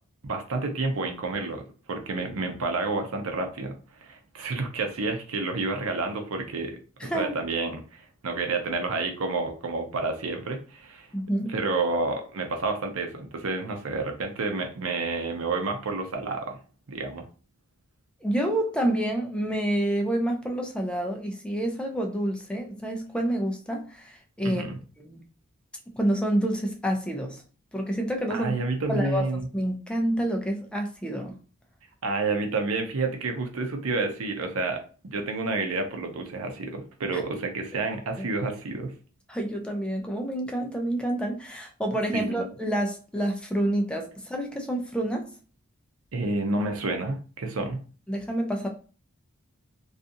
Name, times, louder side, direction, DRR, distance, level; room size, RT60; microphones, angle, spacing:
voice 1, 0.2-1.6 1.9-11.1 11.5-16.6 16.9-17.3 24.4-24.8 28.3-29.5 32.0-38.9 42.1-42.5 46.1-47.8, right 3 dB, 75° right, 0.6 m, -29 dB
voice 2, 7.0-7.3 11.1-11.5 18.2-24.6 25.0-25.2 26.0-27.4 27.7-28.6 28.9-29.2 29.5-31.3 39.3-45.3 48.1-48.7, right 1 dB, 5° left, 0.4 m, -28 dB
2.5 x 2.4 x 2.6 m
head